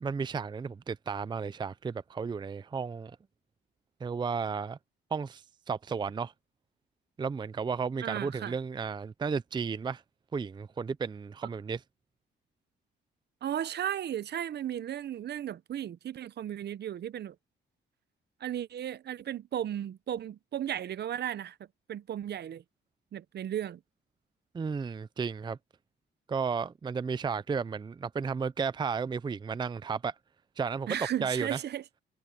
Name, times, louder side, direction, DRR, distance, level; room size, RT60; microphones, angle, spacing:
voice 1, 0.0-3.2 4.0-4.8 5.1-6.3 7.2-10.0 10.3-11.8 24.5-25.6 26.3-30.1 30.6-31.6, right 5 dB, 25° right, 0.5 m, -33 dB
voice 2, 8.0-8.5 13.4-17.4 18.4-21.6 21.9-22.6 23.1-23.8 30.9-31.8, right 10 dB, 55° right, 0.8 m, -35 dB
cardioid pair, 90°, 20 cm